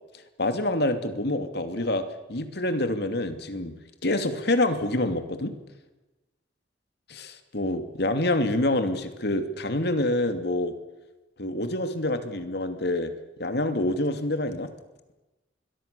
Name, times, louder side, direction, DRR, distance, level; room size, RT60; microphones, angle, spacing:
voice 1, 0.4-2.0 2.3-3.7 4.0-5.5 7.1-10.7 11.4-13.1 13.4-14.7, left 1 dB, 60° left, 8 dB, 2.7 m, -26 dB
26.5 x 22.5 x 6.9 m, 1.1 s
head